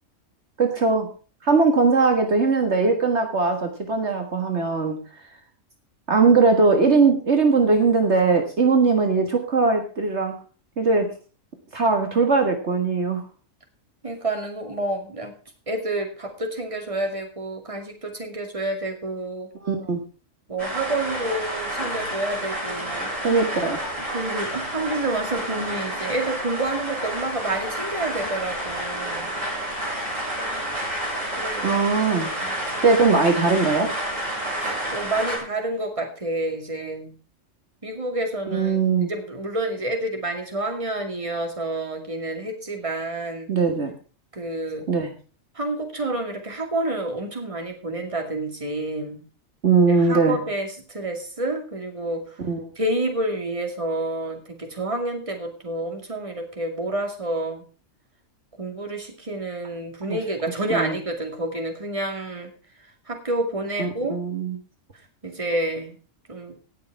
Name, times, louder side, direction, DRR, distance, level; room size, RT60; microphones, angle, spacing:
voice 1, 0.6-1.1 1.4-5.0 6.1-10.3 10.8-11.1 11.7-13.2 19.6-20.0 23.2-23.8 31.6-32.3 32.8-33.9 38.5-39.1 43.5-43.9 44.9-45.1 49.6-50.4 52.5-52.7 60.1-60.2 60.7-61.0 63.8-64.6, right 4 dB, 60° right, 4 dB, 1.9 m, -20 dB
voice 2, 14.0-15.3 15.7-19.5 20.5-23.1 24.0-29.3 31.4-31.8 32.4-32.5 34.6-37.1 37.8-38.8 39.1-43.5 44.3-44.9 45.5-49.2 49.9-52.4 52.8-57.6 58.6-62.5 63.1-64.2 65.2-65.9 66.3-66.5, right 2 dB, 25° right, 4 dB, 2.4 m, -29 dB
sound 1, 20.6-35.4, right 1 dB, 75° right, 8.2 m, -30 dB
18.0 x 6.8 x 4.7 m, 0.37 s
omnidirectional pair, 1.3 m